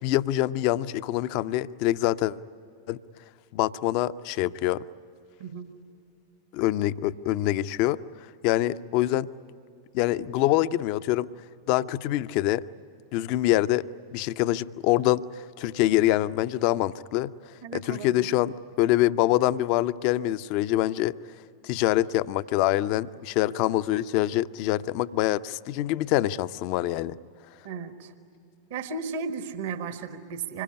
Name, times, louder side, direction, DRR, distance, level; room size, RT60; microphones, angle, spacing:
voice 1, 0.0-2.4 2.9-3.0 3.5-4.8 6.5-8.0 8.4-9.3 9.9-11.3 11.7-12.6 13.1-15.3 15.6-17.3 17.7-21.1 21.6-27.2, left 15 dB, 45° left, 14 dB, 0.6 m, -25 dB
voice 2, 5.4-5.7 17.6-18.3 27.6-28.1 28.7-30.6, right 5 dB, 50° right, 9 dB, 1.4 m, -35 dB
26.0 x 21.0 x 9.8 m, 2.5 s
figure-of-eight pair, 90°, 0 cm